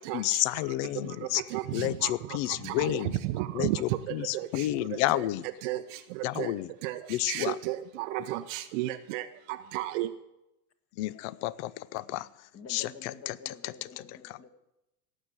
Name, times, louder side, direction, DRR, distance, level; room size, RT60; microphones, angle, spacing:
voice 1, 0.1-1.4 1.7-3.2 3.5-5.5 6.2-6.7 7.1-7.6 10.9-13.7 14.2-14.4, left 17 dB, 50° left, 20 dB, 0.7 m, -31 dB
voice 2, 3.4-3.8 4.3-4.5 5.6-5.8 6.4-6.5 6.8-7.0 7.3-7.8 8.3-9.2 9.7-10.1, right 17 dB, 50° right, 8 dB, 0.7 m, -31 dB
voice 3, 12.5-14.5, left 5 dB, 30° left, 6 dB, 1.7 m, -48 dB
17.5 x 7.4 x 8.0 m, 0.90 s
supercardioid pair, 125°, 47 cm